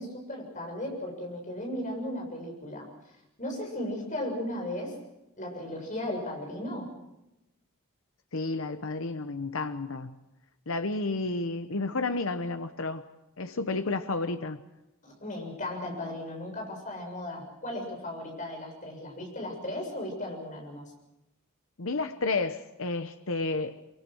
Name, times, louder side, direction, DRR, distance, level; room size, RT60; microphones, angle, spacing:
voice 1, 0.0-2.9 3.4-5.0 5.4-6.9 15.0-20.8, left 1 dB, 35° left, 7.2 m, -36 dB
voice 2, 8.3-10.1 10.7-13.0 13.4-14.6 21.8-24.0, left 3 dB, 65° left, 1.0 m, -31 dB
24.0 x 23.5 x 6.2 m
head